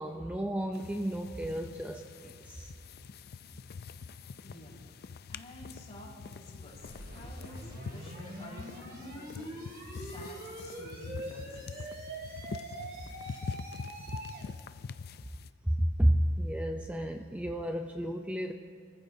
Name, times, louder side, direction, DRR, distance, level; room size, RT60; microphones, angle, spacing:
voice 1, 0.0-2.7 15.6-18.5, equal, 5° right, 4 dB, 0.5 m, -31 dB
sound 1, 0.7-15.5, left 5 dB, 50° left, 0.4 m, -45 dB
voice 2, 4.4-4.8 5.3-11.9, left 1 dB, 30° left, -5 dB, 4.3 m, -51 dB
sound 2, 6.7-14.5, right 1 dB, 50° right, 2.4 m, -44 dB
28.5 x 14.5 x 2.7 m, 2.2 s
head